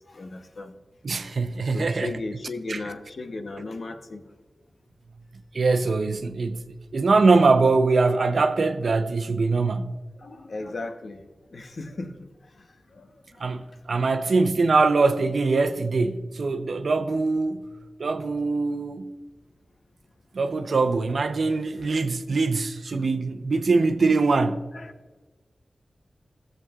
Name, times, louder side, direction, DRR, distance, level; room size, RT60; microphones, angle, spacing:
voice 1, 0.1-0.7 1.7-4.2 10.2-11.2 11.5-12.1 12.9-13.1 14.0-14.3 21.8-21.9 24.7-24.9, left 2 dB, 65° left, 0.9 m, -36 dB
voice 2, 1.0-2.1 2.7-2.8 5.5-10.0 13.4-17.6 18.0-19.1 20.3-24.6, right 3 dB, 75° right, 0.7 m, -23 dB
15.0 x 7.7 x 2.4 m
wide cardioid pair, 75°, 0 cm